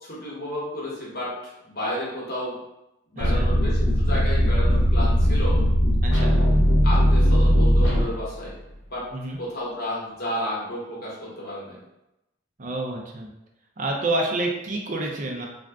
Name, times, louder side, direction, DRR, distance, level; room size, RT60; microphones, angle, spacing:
voice 1, 0.0-1.3 1.6-2.6 3.1-5.6 6.8-8.5 8.9-9.0 9.4-11.8, equal, 50° left, -6 dB, 1.1 m, -32 dB
sound 1, 3.2-8.5, equal, 70° left, 0.8 m, -19 dB
voice 2, 3.2-3.5 6.0-6.4 9.1-9.4 12.6-13.3 13.8-15.5, right 2 dB, 40° right, 0 dB, 0.5 m, -28 dB
2.5 x 2.4 x 3.3 m, 0.90 s
head